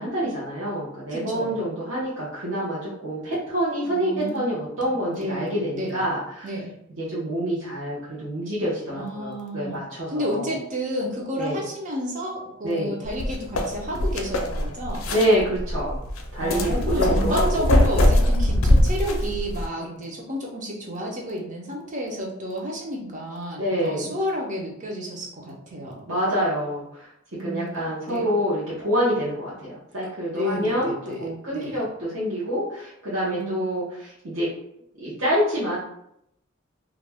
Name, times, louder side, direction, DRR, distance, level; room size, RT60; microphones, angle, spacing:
voice 1, 0.0-6.5 7.0-10.5 11.4-11.6 12.6-13.0 15.1-16.0 16.3-17.7 23.6-24.2 26.1-27.1 27.4-34.5 35.0-35.8, equal, 65° right, -9 dB, 0.8 m, -27 dB
voice 2, 1.1-1.6 3.8-4.4 4.9-6.0 6.4-6.7 8.9-9.8 10.1-15.1 16.4-26.1 27.3-28.3 30.3-31.8 33.2-33.5, equal, 35° right, -1 dB, 0.6 m, -31 dB
sound 1, 13.0-19.7, left 1 dB, 80° left, 0.5 m, -22 dB
2.4 x 2.2 x 3.3 m, 0.76 s
head